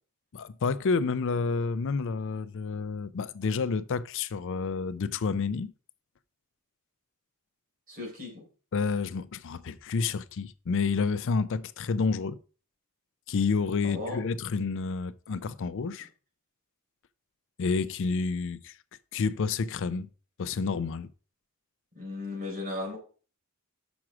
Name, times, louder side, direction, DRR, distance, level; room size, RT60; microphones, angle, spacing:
voice 1, 0.3-5.7 8.7-12.4 13.3-16.1 17.6-18.8 19.1-20.1 20.4-21.1, left 4 dB, 60° left, 0.4 m, -29 dB
voice 2, 7.9-8.4 13.8-14.2 21.9-23.0, left 2 dB, 40° right, 3.9 m, -36 dB
6.1 x 6.1 x 6.0 m
head